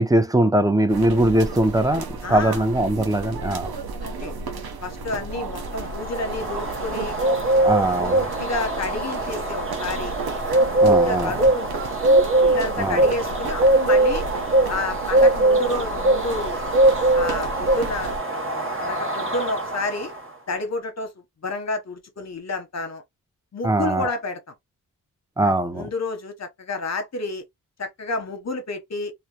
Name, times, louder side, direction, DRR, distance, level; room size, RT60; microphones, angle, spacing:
voice 1, 0.0-3.7 7.6-8.2 10.8-11.4 12.8-13.0 23.6-24.1 25.4-25.9, right 1 dB, 10° right, 0.4 m, -21 dB
sound 1, 0.9-18.2, right 3 dB, 75° right, 0.7 m, -33 dB
voice 2, 2.2-2.6 4.0-4.4 4.8-7.1 8.0-10.1 10.8-11.7 12.4-14.2 14.7-16.6 17.1-20.1 20.5-21.1 21.4-23.0 23.5-24.5 25.4-27.4 27.8-29.1, left 2 dB, 45° left, 0.8 m, -30 dB
sound 2, 5.6-20.2, right 1 dB, 35° right, 0.8 m, -21 dB
2.1 x 2.1 x 2.7 m
cardioid pair, 50°, 37 cm